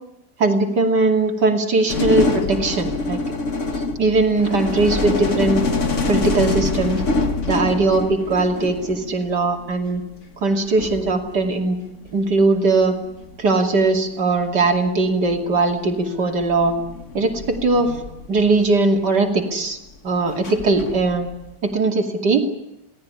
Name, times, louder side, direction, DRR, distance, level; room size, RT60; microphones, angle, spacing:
voice 1, 0.4-3.2 3.7-5.6 6.1-7.0 7.5-10.0 10.4-11.8 12.1-12.9 13.4-16.7 17.1-17.9 18.3-19.8 20.0-21.3 21.6-22.4, right 3 dB, 90° right, 3 dB, 3.3 m, -19 dB
sound 1, 1.9-9.3 10.5-10.6 10.8-12.1 13.2-13.5 14.6-14.7 15.3-15.6 16.4-18.8 20.3-21.5, left 3 dB, 45° left, 2.2 m, -25 dB
29.0 x 18.0 x 9.8 m, 0.90 s
omnidirectional pair, 1.8 m